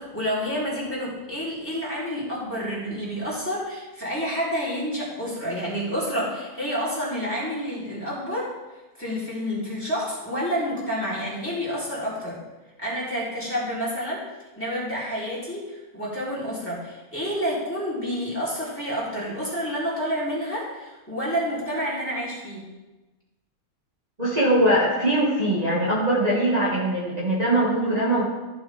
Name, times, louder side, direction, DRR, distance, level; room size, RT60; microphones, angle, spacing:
voice 1, 0.0-8.5 9.0-12.4 12.8-14.3 14.6-22.7, equal, 10° left, -8 dB, 3.6 m, -29 dB
voice 2, 24.2-28.3, right 1 dB, 25° right, -9 dB, 2.0 m, -21 dB
15.0 x 6.9 x 3.5 m, 1.1 s
omnidirectional pair, 1.6 m